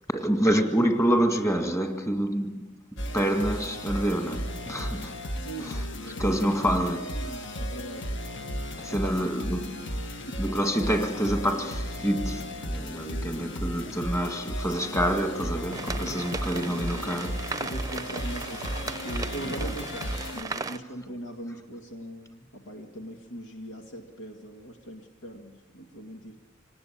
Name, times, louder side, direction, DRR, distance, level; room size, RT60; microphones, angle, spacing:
voice 1, 0.1-2.7 3.1-5.2 5.6-5.9 6.2-7.2 8.8-9.9 10.4-17.5, equal, 15° left, 1.9 m, -27 dB
sound 1, 3.0-20.4, equal, 60° left, 1.7 m, -34 dB
voice 2, 5.4-5.7 6.0-6.9 7.1-8.1 8.9-9.2 10.3-10.4 13.8-14.0 16.0-17.1 17.6-26.4, right 1 dB, 85° left, 2.2 m, -41 dB
sound 2, 15.7-20.8, right 3 dB, 15° right, 0.7 m, -37 dB
25.5 x 19.0 x 8.7 m
head